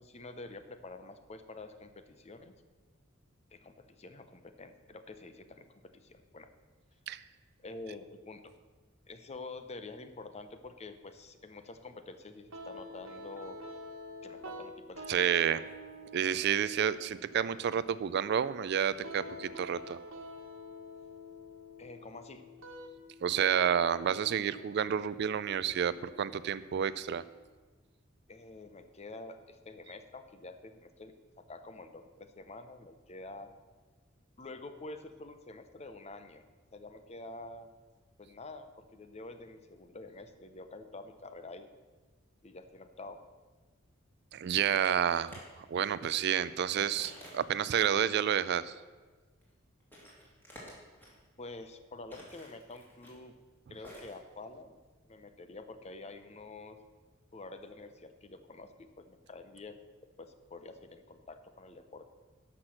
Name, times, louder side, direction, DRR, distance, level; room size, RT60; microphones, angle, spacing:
voice 1, 0.0-2.5 3.5-6.5 7.6-8.5 9.1-13.6 14.2-15.3 21.8-22.5 28.3-31.1 31.5-33.5 34.4-36.5 36.7-37.7 38.2-41.7 42.4-43.2 51.4-53.3 53.7-54.8 55.1-56.8 57.3-59.8 60.2-62.1, left 2 dB, 30° left, 9 dB, 0.7 m, -48 dB
sound 1, 12.5-27.5, equal, 90° right, 1.4 m, -48 dB
voice 2, 15.1-15.6 16.1-20.0 23.2-27.2 44.3-45.3 45.7-48.7, right 8 dB, 55° right, 16 dB, 0.3 m, -30 dB
sound 2, 44.8-45.4 45.7-45.9 46.8-48.0 48.4-48.5 49.4-49.5 49.8-51.1 52.1-53.2 53.8-54.1, equal, 10° left, 2.6 m, -51 dB
12.0 x 6.0 x 6.4 m, 1.3 s
head